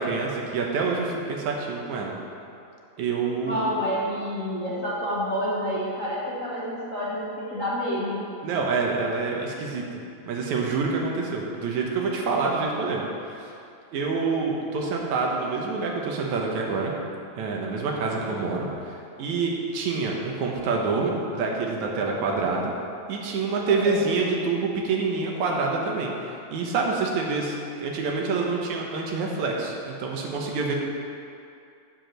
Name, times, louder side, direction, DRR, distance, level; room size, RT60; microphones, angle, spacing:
voice 1, 0.0-2.2 3.0-3.7 8.4-10.0 10.3-13.5 13.9-16.9 17.4-22.7 23.1-30.8, right 4 dB, 80° right, -1 dB, 2.5 m, -27 dB
voice 2, 3.5-8.2 18.3-18.5 23.7-24.1, equal, 35° left, -9 dB, 1.3 m, -29 dB
8.7 x 5.3 x 7.6 m, 2.6 s
omnidirectional pair, 3.3 m